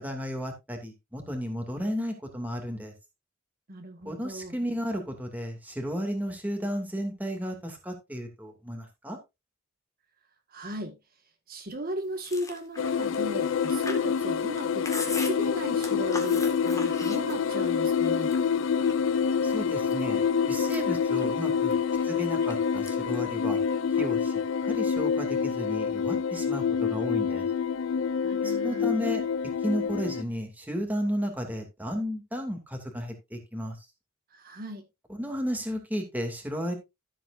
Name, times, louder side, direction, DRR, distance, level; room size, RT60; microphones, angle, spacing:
voice 1, 0.0-2.9 4.0-9.2 19.4-21.8 22.0-23.6 24.0-27.5 28.4-29.2 29.6-33.8 35.2-36.7, equal, 10° right, 2.5 m, -33 dB
voice 2, 3.7-4.6 10.5-11.0 11.5-18.3 28.2-28.9 34.3-34.8, equal, 45° right, 1.7 m, -37 dB
Chewing mastication, 12.2-17.7 18.0-19.1 19.6-20.2 20.5-22.5 22.8-23.2 23.4-24.3, left 3 dB, 15° left, 1.9 m, -39 dB
sound 1, 12.8-30.2, left 6 dB, 70° left, 0.4 m, -27 dB
13.5 x 7.8 x 2.6 m
head